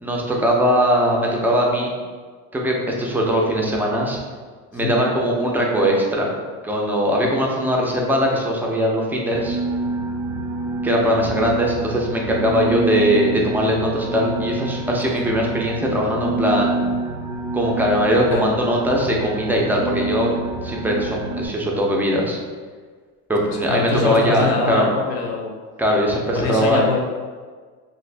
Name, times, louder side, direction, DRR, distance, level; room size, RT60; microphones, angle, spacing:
voice 1, 0.0-1.9 2.5-4.2 4.7-6.3 6.6-9.6 10.8-16.8 17.5-20.3 20.6-22.4 23.3-24.9 25.8-26.8, equal, 5° right, -2 dB, 0.4 m, -20 dB
sound 1, 9.3-21.5, right 2 dB, 85° right, 0.5 m, -27 dB
voice 2, 23.7-25.5 26.3-27.0, left 3 dB, 55° left, 1 dB, 0.6 m, -23 dB
2.7 x 2.5 x 3.2 m, 1.5 s
cardioid pair, 130°, 30 cm